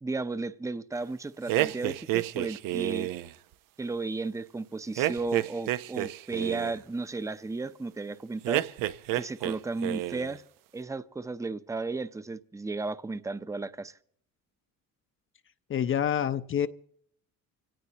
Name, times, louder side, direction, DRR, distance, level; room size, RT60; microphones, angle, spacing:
voice 1, 0.0-3.1 3.8-8.7 9.1-10.4 10.7-13.9, right 3 dB, 10° right, 0.7 m, -34 dB
sound 1, 1.5-3.3 5.0-6.8 8.4-9.6 9.8-10.3, right 15 dB, 90° right, 0.8 m, -30 dB
voice 2, 15.7-16.7, left 9 dB, 40° left, 0.7 m, -27 dB
25.5 x 18.0 x 2.9 m
cardioid pair, 120°, 32 cm